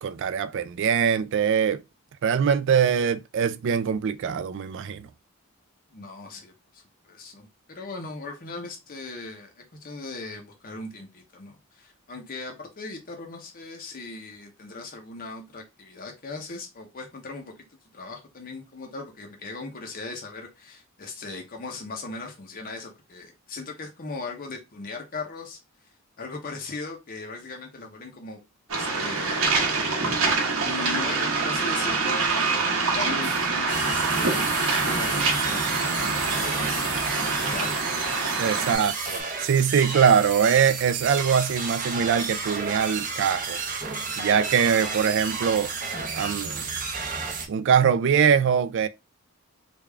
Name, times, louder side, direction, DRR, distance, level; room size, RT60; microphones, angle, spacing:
voice 1, 0.0-1.8 2.2-5.1 38.4-38.9 39.4-43.6 44.2-45.7 46.1-46.6 47.5-48.9, right 7 dB, 55° right, 0.3 m, -22 dB
voice 2, 5.9-17.5 17.9-25.6 26.2-28.4 28.7-29.6 30.6-37.9 38.5-39.0, left 3 dB, 40° left, 0.7 m, -38 dB
Waves surf, 28.7-38.7, right 4 dB, 75° right, 1.0 m, -25 dB
sound 1, 33.2-39.2, equal, ahead, 0.8 m, -41 dB
sound 2, 33.7-47.5, right 4 dB, 40° right, 0.7 m, -32 dB
3.4 x 2.3 x 3.3 m
head